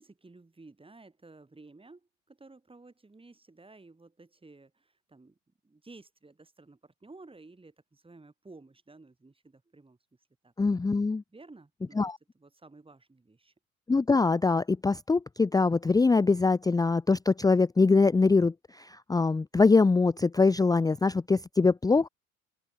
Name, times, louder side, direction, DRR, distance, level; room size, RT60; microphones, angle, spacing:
voice 1, 0.0-5.4 5.6-10.0 10.4-10.5 11.3-12.0 12.3-13.5, right 3 dB, 15° right, 6.8 m, -53 dB
voice 2, 10.6-11.2 12.0-12.2 13.9-22.1, left 4 dB, 10° left, 0.7 m, -23 dB
open air
figure-of-eight pair, 70°, 41 cm